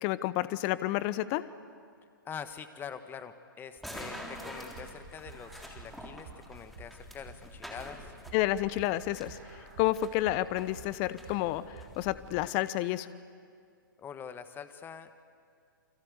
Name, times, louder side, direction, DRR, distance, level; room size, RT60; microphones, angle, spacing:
voice 1, 0.0-1.4 8.3-13.1, left 15 dB, 35° left, 16 dB, 0.9 m, -30 dB
voice 2, 2.2-8.1 14.0-15.2, left 7 dB, 20° left, 10 dB, 1.5 m, -45 dB
sound 1, 3.8-12.5, equal, ahead, 3.7 m, -47 dB
sound 2, 4.3-12.0, right 5 dB, 50° right, 8.0 m, -51 dB
29.0 x 25.0 x 8.2 m, 2.2 s
figure-of-eight pair, 120°, 11 cm